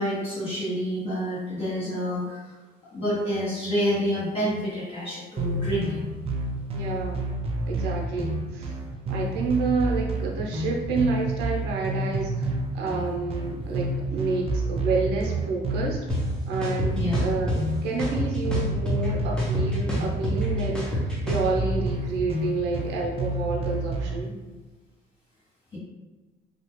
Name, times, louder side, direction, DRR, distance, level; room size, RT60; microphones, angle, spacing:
voice 1, 0.0-2.4 2.9-6.0 16.9-17.2, equal, 35° left, -10 dB, 1.3 m, -28 dB
sound 1, 5.4-24.2, right 2 dB, 35° right, 0.4 m, -30 dB
voice 2, 6.7-7.3 7.7-8.8 9.1-16.0 16.5-24.3, right 3 dB, 85° right, -1 dB, 0.7 m, -29 dB
sound 2, 16.1-16.2 16.6-17.6 18.0-19.1 19.4-21.5, left 1 dB, 5° left, 0.8 m, -27 dB
2.7 x 2.4 x 3.0 m, 1.2 s
cardioid pair, 110°, 17 cm